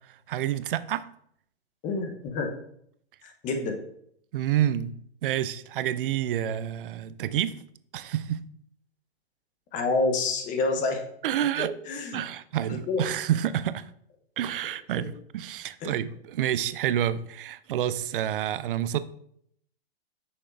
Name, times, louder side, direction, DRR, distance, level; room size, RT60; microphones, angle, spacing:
voice 1, 0.3-1.1 4.3-4.9 5.2-7.6 7.9-8.4 11.2-11.7 12.1-13.9 14.4-19.0, right 11 dB, 55° right, 0.5 m, -28 dB
voice 2, 1.8-2.5 3.2-3.8 9.7-11.0 11.6-12.2 12.7-13.1 15.8-16.0, left 3 dB, 25° left, 0.9 m, -28 dB
6.4 x 6.1 x 2.5 m
hypercardioid pair, 130°, 32 cm